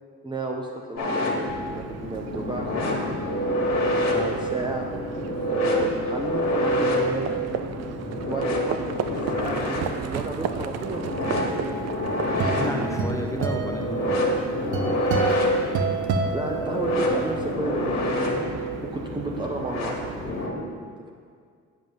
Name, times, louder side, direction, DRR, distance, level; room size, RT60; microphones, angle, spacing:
voice 1, 0.2-1.4 1.7-3.2 4.1-7.4 8.3-11.7 15.9-18.4 18.8-20.4, right 2 dB, 15° right, -1 dB, 0.7 m, -33 dB
sound 1, 1.0-20.5, equal, 60° left, 1.7 m, -27 dB
Livestock farm animals working animals, 1.5-20.5, right 9 dB, 60° right, 0.5 m, -37 dB
sound 2, 11.8-17.2, right 4 dB, 75° right, 0.9 m, -29 dB
voice 2, 12.3-14.3, left 1 dB, 10° left, 1 dB, 1.0 m, -31 dB
9.3 x 5.5 x 5.4 m, 2.1 s
cardioid pair, 90°, 30 cm